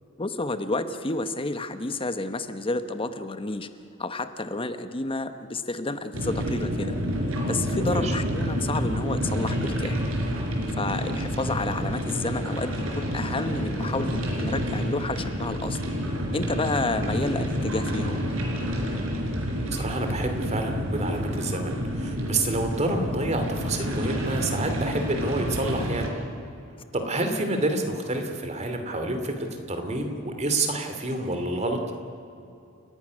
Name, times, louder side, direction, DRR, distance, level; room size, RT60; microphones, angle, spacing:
voice 1, 0.2-3.7 4.0-7.0 7.5-10.0 10.8-15.9 16.3-18.2, left 2 dB, 25° left, 10 dB, 1.0 m, -30 dB
sound 1, 6.1-26.1, equal, 85° right, 4.4 m, -29 dB
voice 2, 7.8-8.2 19.7-26.1 26.9-31.8, right 2 dB, 35° right, 5 dB, 2.6 m, -28 dB
29.5 x 11.5 x 9.6 m, 2.6 s
head